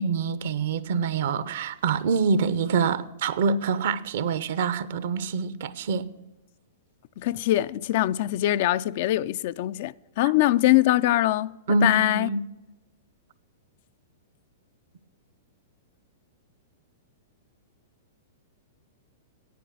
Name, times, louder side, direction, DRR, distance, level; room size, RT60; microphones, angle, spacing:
voice 1, 0.0-6.1 11.7-12.4, right 5 dB, 65° right, 0.7 m, -25 dB
voice 2, 7.2-12.3, left 15 dB, 55° left, 0.4 m, -23 dB
9.3 x 9.2 x 7.5 m
hypercardioid pair, 115°, 0 cm